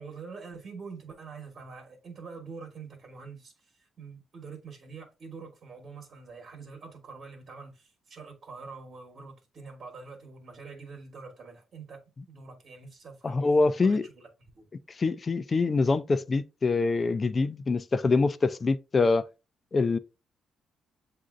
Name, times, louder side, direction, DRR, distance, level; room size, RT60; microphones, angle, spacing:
voice 1, 0.0-3.5 4.0-12.0 12.3-13.4 13.8-14.7, right 4 dB, 50° right, 1.2 m, -45 dB
voice 2, 13.2-14.1 15.0-19.2 19.7-20.0, left 3 dB, 35° left, 0.4 m, -25 dB
7.4 x 2.6 x 2.4 m
cardioid pair, 100°, 0 cm